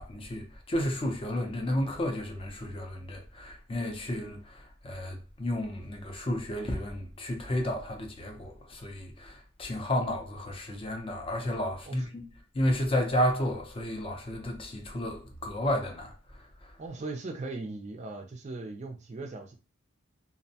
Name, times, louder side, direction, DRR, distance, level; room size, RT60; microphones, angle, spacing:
voice 1, 0.0-12.2 12.5-16.7, left 1 dB, 25° left, 0.4 m, -32 dB
voice 2, 16.8-19.5, right 3 dB, 35° right, 0.4 m, -39 dB
2.5 x 2.1 x 2.7 m
head